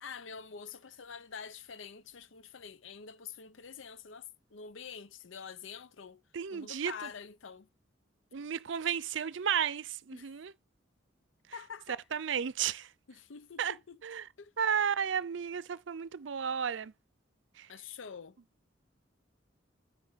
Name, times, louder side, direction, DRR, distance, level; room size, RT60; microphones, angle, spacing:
voice 1, 0.0-6.2 6.5-7.7 10.1-10.3 11.5-12.0 13.1-14.0 14.4-14.5 17.7-18.4, left 6 dB, 85° left, 0.6 m, -46 dB
voice 2, 6.3-7.1 8.3-10.5 12.1-12.9 13.6-13.8 14.0-14.3 14.6-16.9 17.6-17.7, right 7 dB, 75° right, 0.5 m, -33 dB
8.8 x 5.0 x 4.1 m
head